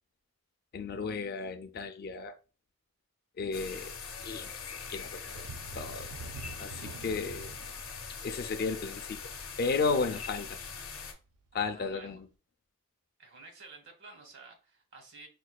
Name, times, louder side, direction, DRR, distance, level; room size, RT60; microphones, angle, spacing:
voice 1, 0.7-2.3 3.4-4.0 4.2-5.5 5.8-6.1 6.6-7.5 8.2-9.2 9.6-10.6 11.5-12.3, left 4 dB, 45° left, 0.4 m, -34 dB
sound 1, 3.5-11.1, left 5 dB, 65° left, 0.7 m, -42 dB
sound 2, 5.3-10.8 11.2-11.4 11.8-11.9, right 4 dB, 85° right, 0.4 m, -47 dB
voice 2, 11.5-12.2 13.2-15.3, right 3 dB, 55° right, 1.0 m, -52 dB
5.1 x 2.2 x 2.2 m
head